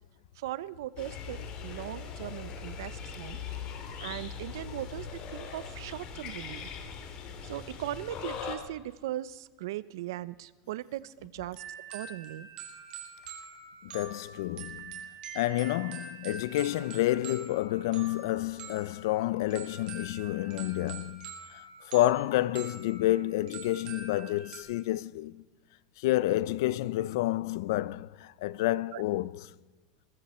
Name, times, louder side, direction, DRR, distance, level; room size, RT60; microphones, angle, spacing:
voice 1, 0.4-3.4 4.0-6.7 7.4-11.6 11.9-12.5 28.9-29.0, right 14 dB, 90° right, 0.7 m, -39 dB
sound 1, 1.0-8.6, left 6 dB, 40° left, 2.3 m, -41 dB
sound 2, 11.6-24.6, right 6 dB, 45° right, 4.1 m, -45 dB
voice 2, 13.8-15.0 15.3-25.4 26.0-29.5, left 15 dB, 75° left, 0.5 m, -29 dB
21.5 x 15.0 x 4.4 m
supercardioid pair, 160°, 2 cm